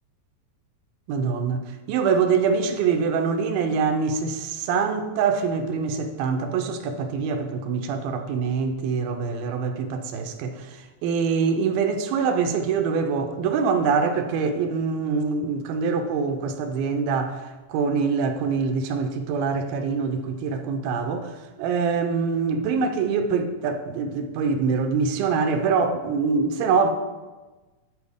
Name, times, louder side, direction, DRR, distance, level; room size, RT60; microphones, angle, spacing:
voice 1, 1.1-17.4 17.7-21.3 21.6-26.9, right 5 dB, 90° right, 2.4 m, -24 dB
11.5 x 4.4 x 3.5 m
omnidirectional pair, 4.2 m